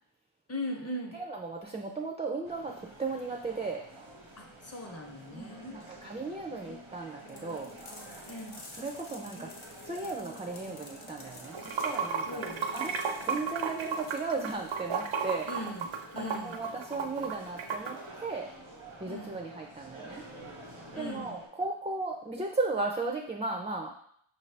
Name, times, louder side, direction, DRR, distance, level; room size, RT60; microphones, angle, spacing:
voice 1, 0.5-1.2 4.4-5.8 8.3-8.6 12.3-12.6 15.5-16.6 19.0-19.5 20.9-21.4, left 1 dB, 30° left, 2 dB, 0.7 m, -39 dB
voice 2, 1.1-3.8 5.3-7.7 8.7-9.5 9.8-12.9 13.2-15.5 16.2-18.5 19.0-20.2 20.9-23.9, right 3 dB, 15° right, 1 dB, 0.4 m, -36 dB
sound 1, 2.4-21.5, right 1 dB, 90° right, 1.0 m, -50 dB
sound 2, 7.3-16.7, left 3 dB, 75° left, 0.8 m, -52 dB
Water / Sink (filling or washing), 11.4-17.9, right 6 dB, 70° right, 0.6 m, -33 dB
5.1 x 2.6 x 3.2 m, 0.67 s
wide cardioid pair, 60°, 49 cm